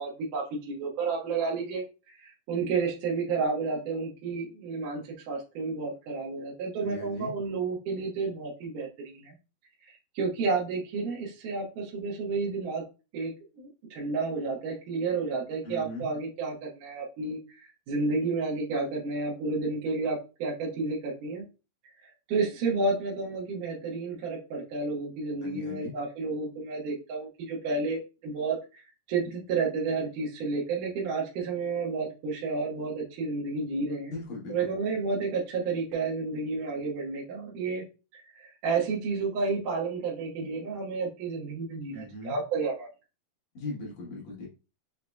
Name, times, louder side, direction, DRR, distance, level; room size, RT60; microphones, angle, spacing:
voice 1, 0.0-9.3 9.8-12.8 13.1-21.4 22.0-28.8 29.1-34.1 34.5-37.8 38.1-42.9, right 4 dB, 70° right, -4 dB, 2.3 m, -31 dB
voice 2, 6.8-7.3 15.6-16.1 25.4-25.9 34.1-34.7 41.9-42.3 43.5-44.5, left 2 dB, 60° left, -4 dB, 2.4 m, -38 dB
6.1 x 2.7 x 2.2 m, 0.31 s
omnidirectional pair, 4.1 m